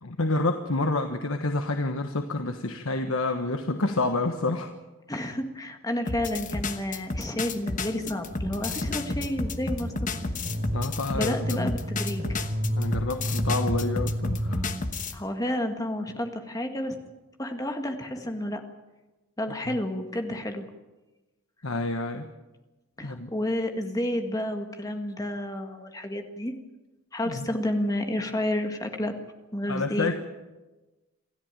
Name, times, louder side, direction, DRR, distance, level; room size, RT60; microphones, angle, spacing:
voice 1, 0.0-4.7 10.7-11.7 12.7-14.7 19.7-19.8 21.6-22.3 23.0-23.3 27.2-27.4 29.7-30.2, left 2 dB, 75° left, 6 dB, 1.3 m, -28 dB
voice 2, 5.1-10.1 11.1-12.3 15.1-17.0 17.4-18.6 19.4-20.6 23.0-26.5 27.1-29.1 29.5-30.1, left 1 dB, 15° left, 5 dB, 1.8 m, -30 dB
sound 1, 6.1-15.2, left 3 dB, 35° left, 1.2 m, -32 dB
sound 2, 8.3-10.9 11.2-12.9 13.2-14.8, equal, 35° right, 4.9 m, -31 dB
28.0 x 13.5 x 9.1 m, 1.2 s
head